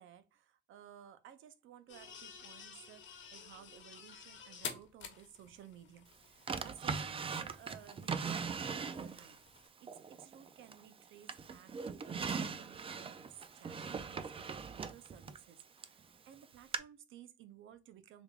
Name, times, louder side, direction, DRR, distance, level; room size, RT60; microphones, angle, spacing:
voice 1, 0.0-18.2, right 10 dB, 80° right, 0.6 m, -57 dB
sound 1, 1.9-9.7, left 6 dB, 70° left, 1.0 m, -51 dB
Drawer open or close, 6.5-9.4 9.9-10.9 11.3-16.0 16.7-16.8, right 5 dB, 30° right, 0.4 m, -40 dB
3.5 x 3.3 x 2.4 m
cardioid pair, 90°, 20 cm